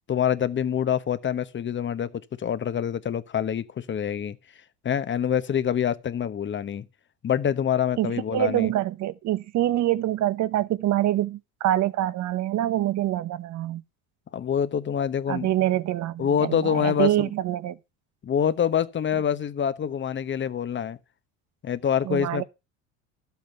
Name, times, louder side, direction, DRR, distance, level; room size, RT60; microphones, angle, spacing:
voice 1, 0.1-4.4 4.8-6.9 7.2-8.7 14.3-15.5 16.2-17.3 18.2-21.0 21.6-22.4, left 8 dB, 30° left, 1.1 m, -26 dB
voice 2, 8.0-13.8 15.3-17.8 22.0-22.4, right 13 dB, 50° right, 1.1 m, -25 dB
12.0 x 8.2 x 5.8 m
supercardioid pair, 105°, 36 cm